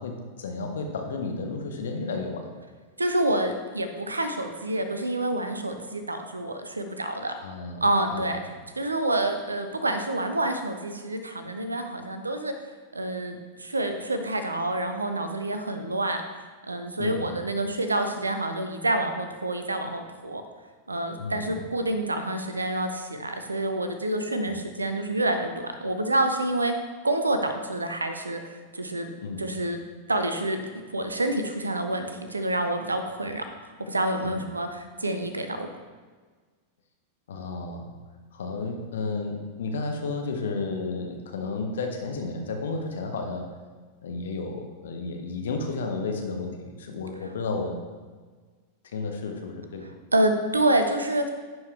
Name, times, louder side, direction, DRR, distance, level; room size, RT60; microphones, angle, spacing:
voice 1, 0.0-2.5 7.4-7.8 8.1-8.4 17.0-17.4 21.2-21.6 24.4-24.6 29.2-29.5 34.2-34.4 37.3-38.0 38.3-43.5 44.0-47.8 48.9-49.9, left 3 dB, 65° left, 4 dB, 0.9 m, -32 dB
voice 2, 3.0-7.3 7.8-8.4 8.8-12.5 12.9-16.2 16.7-20.4 20.9-26.7 27.0-29.1 29.4-29.8 30.1-30.6 30.9-35.7 50.1-51.3, right 1 dB, 80° right, 7 dB, 0.6 m, -27 dB
10.5 x 4.7 x 3.3 m, 1.4 s
figure-of-eight pair, 90°, 0 cm